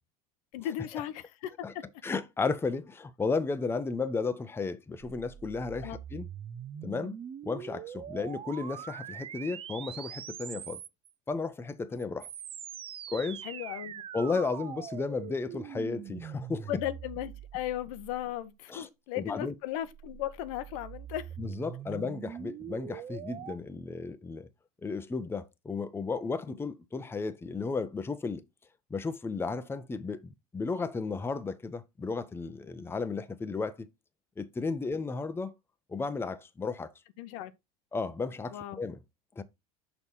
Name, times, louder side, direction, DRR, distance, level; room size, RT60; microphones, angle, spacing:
voice 1, 0.5-1.8 5.8-6.0 13.4-14.0 16.7-21.3 37.2-37.5 38.5-38.8, left 12 dB, 65° left, 0.8 m, -36 dB
voice 2, 2.0-6.3 6.8-7.1 7.4-10.8 11.3-12.3 13.1-13.4 14.1-16.7 18.7-18.9 19.2-19.5 21.4-24.5 24.8-28.4 28.9-33.9 34.4-35.5 35.9-36.9 37.9-39.0 39.4-39.5, left 4 dB, 10° left, 0.7 m, -34 dB
sound 1, 5.0-11.1 12.0-18.6 19.6-23.6, right 9 dB, 30° right, 0.5 m, -43 dB
6.4 x 2.9 x 5.5 m
hypercardioid pair, 95°, 19 cm